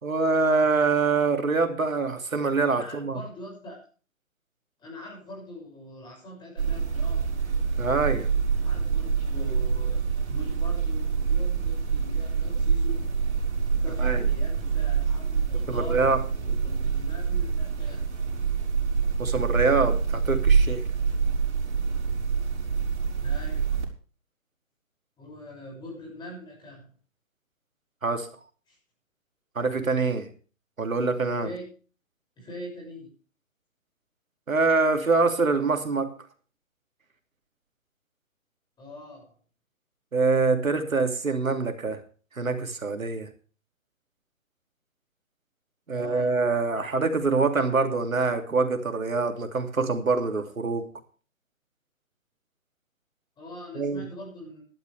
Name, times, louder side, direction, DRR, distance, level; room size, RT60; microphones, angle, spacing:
voice 1, 0.0-3.2 7.8-8.3 14.0-14.2 15.7-16.2 19.2-20.8 28.0-28.3 29.5-30.3 30.8-31.5 34.5-36.1 40.1-42.0 42.4-43.3 45.9-50.9 53.7-54.1, right 4 dB, 80° right, 6 dB, 2.9 m, -25 dB
voice 2, 2.7-3.8 4.8-7.4 8.6-13.2 13.8-18.0 23.2-23.7 25.2-26.9 28.7-28.8 31.4-31.7 32.4-33.1 38.8-39.3 45.9-46.4 53.4-54.6, left 1 dB, 10° left, -2 dB, 6.9 m, -43 dB
sound 1, 6.6-23.9, right 5 dB, 55° right, 5.3 m, -26 dB
18.0 x 12.0 x 3.5 m, 0.38 s
figure-of-eight pair, 140°, 40 cm